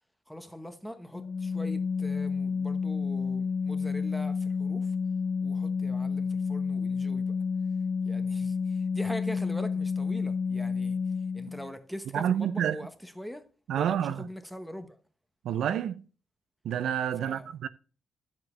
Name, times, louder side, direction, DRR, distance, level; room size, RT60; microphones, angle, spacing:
voice 1, 0.3-5.0 5.4-7.4 8.1-15.0 17.2-17.7, equal, ahead, 0.9 m, -42 dB
Organ, 1.1-11.7, left 5 dB, 30° left, 0.8 m, -30 dB
voice 2, 12.1-12.8 13.7-14.3 15.4-16.1 16.6-17.7, right 9 dB, 75° right, 0.5 m, -28 dB
11.5 x 7.4 x 3.2 m
cardioid pair, 155°, 0 cm